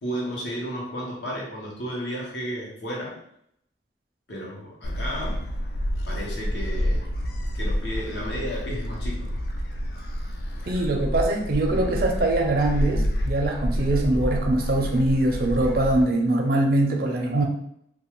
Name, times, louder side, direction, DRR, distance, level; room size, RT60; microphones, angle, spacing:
voice 1, 0.0-3.2 4.3-5.5 6.0-7.1 7.5-9.3, equal, 80° left, -3 dB, 0.9 m, -33 dB
Gull seagull, 4.8-16.0, equal, 60° left, 0.3 m, -28 dB
voice 2, 10.7-17.5, right 2 dB, 55° right, 2 dB, 0.5 m, -23 dB
2.3 x 2.3 x 3.0 m, 0.73 s
head